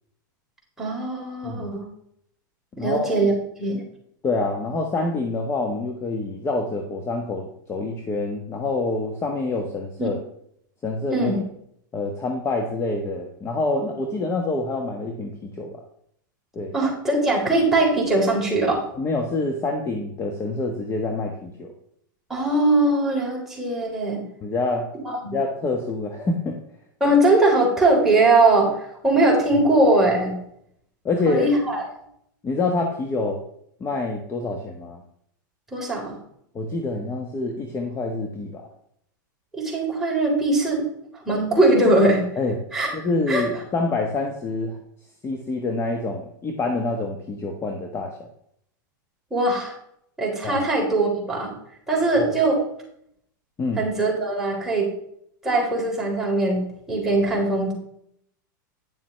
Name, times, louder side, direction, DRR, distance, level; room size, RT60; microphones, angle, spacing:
voice 1, 0.8-1.8 2.8-3.3 3.6-3.8 10.0-10.1 11.1-11.4 16.7-18.8 22.3-24.2 25.0-25.3 27.0-28.8 29.0-30.4 31.3-31.9 35.7-36.1 39.5-40.9 41.1-42.3 42.7-42.9 43.3-43.5 49.3-49.7 50.2-51.5 51.9-52.6 53.8-54.9 55.4-57.7, right 2 dB, 5° right, -4 dB, 3.9 m, -20 dB
voice 2, 2.8-3.1 4.2-10.2 10.8-11.3 11.9-15.8 16.5-16.7 18.9-21.7 24.4-24.9 25.3-26.6 31.0-31.5 32.4-33.4 33.8-35.0 36.5-38.6 42.4-42.6 42.9-44.8 45.2-48.2 50.4-50.7 52.2-52.3 53.6-53.8, left 3 dB, 25° left, 3 dB, 1.2 m, -26 dB
10.0 x 7.3 x 3.3 m, 0.70 s
hypercardioid pair, 120°, 11 cm